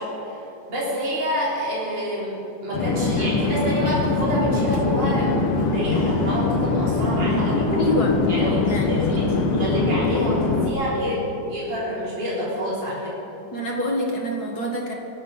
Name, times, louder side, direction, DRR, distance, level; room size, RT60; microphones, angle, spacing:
voice 1, 0.0-8.0 8.3-8.6 8.9-13.1, equal, 55° right, -8 dB, 4.5 m, -27 dB
Conversation / Chatter / Fixed-wing aircraft airplane, 2.7-10.7, left 3 dB, 80° left, 2.0 m, -22 dB
voice 2, 7.7-8.2 8.7-9.2 13.5-14.9, left 1 dB, 50° left, 0 dB, 2.0 m, -26 dB
23.5 x 12.0 x 4.0 m, 2.9 s
omnidirectional pair, 2.3 m